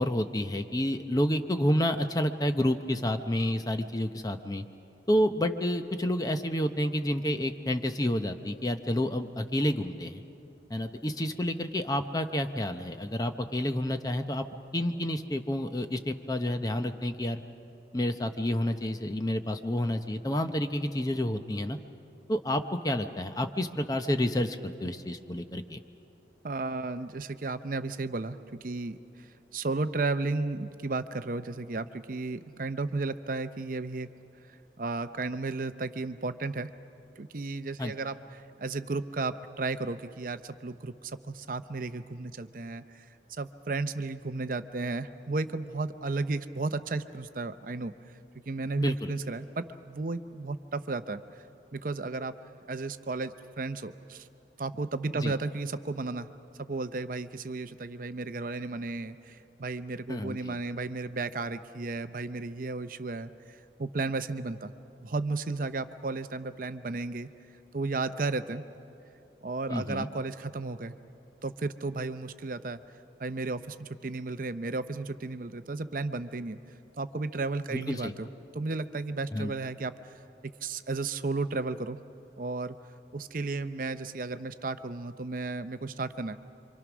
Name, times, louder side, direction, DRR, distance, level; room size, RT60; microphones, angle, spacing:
voice 1, 0.0-4.6 5.1-10.2 10.7-14.5 14.7-17.4 17.9-21.8 22.3-25.8 37.8-37.9 48.8-49.1 55.2-55.3 60.1-60.6 69.7-70.1 77.7-78.1 79.3-79.5, left 1 dB, 20° left, 7 dB, 0.7 m, -29 dB
voice 2, 26.4-34.1 34.5-36.7 37.2-43.1 43.4-47.9 48.5-51.2 51.7-52.3 52.7-54.3 54.6-56.3 56.6-64.7 65.0-67.3 67.7-68.6 69.4-70.9 71.4-72.8 73.2-76.6 77.0-78.3 78.5-80.1 80.6-82.0 82.4-82.8 83.1-86.4, right 3 dB, 45° right, 11 dB, 0.6 m, -34 dB
28.0 x 25.0 x 6.1 m, 2.8 s
head